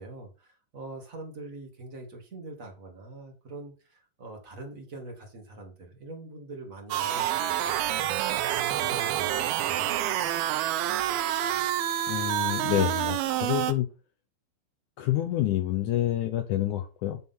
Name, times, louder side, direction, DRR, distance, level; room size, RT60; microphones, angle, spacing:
voice 1, 0.0-9.9, right 2 dB, 30° right, 1 dB, 1.6 m, -44 dB
sound 1, 6.9-13.7, right 12 dB, 85° right, 2.6 m, -28 dB
voice 2, 12.1-13.9 15.0-17.2, left 13 dB, 80° left, 7 dB, 1.8 m, -28 dB
9.6 x 3.7 x 5.7 m, 0.33 s
omnidirectional pair, 4.3 m